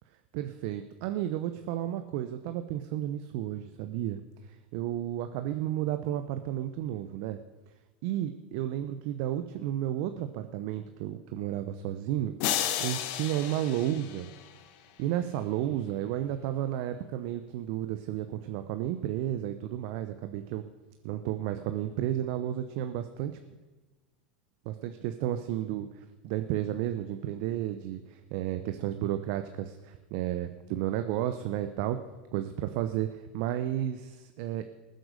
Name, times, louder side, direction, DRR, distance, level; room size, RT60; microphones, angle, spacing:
voice 1, 0.3-4.2 4.4-7.4 8.0-14.3 15.0-20.6 21.0-23.4 24.6-32.0 32.3-34.6, right 12 dB, 60° right, 9 dB, 0.8 m, -32 dB
sound 1, 12.4-14.7, left 11 dB, 60° left, 1.2 m, -33 dB
19.5 x 7.7 x 6.7 m, 1.2 s
hypercardioid pair, 90°, 5 cm